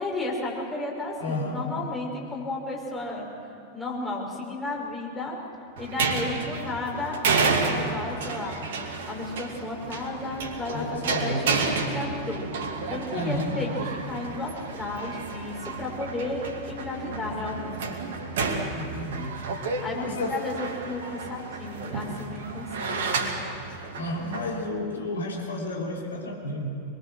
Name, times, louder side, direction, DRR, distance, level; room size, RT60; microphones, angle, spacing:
voice 1, 0.0-3.3 3.7-5.4 5.8-8.6 9.1-12.5 12.9-18.0 19.8-23.5, left 2 dB, 15° left, -2 dB, 5.8 m, -33 dB
voice 2, 1.2-1.7 10.7-11.6 13.1-13.5 18.8-19.5 19.9-20.5 24.0-26.8, left 1 dB, 70° left, -1 dB, 3.2 m, -31 dB
sound 1, 5.8-24.5, right 4 dB, 55° right, 2.4 m, -31 dB
24.5 x 22.5 x 6.4 m, 2.8 s
figure-of-eight pair, 90°, 0 cm